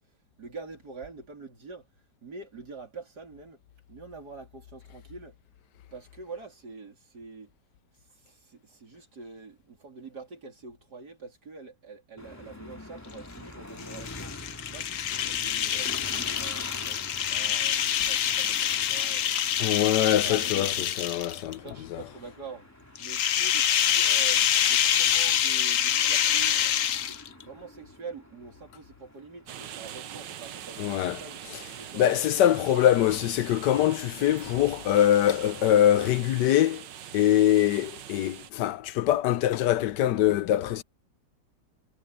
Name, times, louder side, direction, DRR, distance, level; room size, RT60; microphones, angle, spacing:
voice 1, 0.4-1.9 2.2-3.6 3.9-5.4 5.9-7.5 8.1-14.3 14.7-19.4 19.8-20.7 21.6-22.7 23.0-26.6 27.1-31.4 31.8-32.2 32.5-33.0 34.1-34.4, right 4 dB, 65° right, 4.0 m, -45 dB
sound 1, 12.2-30.8, left 1 dB, 10° left, 2.7 m, -46 dB
sound 2, 13.8-21.5 23.0-27.4, left 9 dB, 60° left, 1.0 m, -26 dB
voice 2, 19.6-21.6 21.9-22.0 30.8-31.2 31.9-36.8 37.1-40.8, left 12 dB, 75° left, 1.3 m, -23 dB
sound 3, 29.5-38.5, right 10 dB, 90° right, 1.7 m, -43 dB
omnidirectional pair, 1.9 m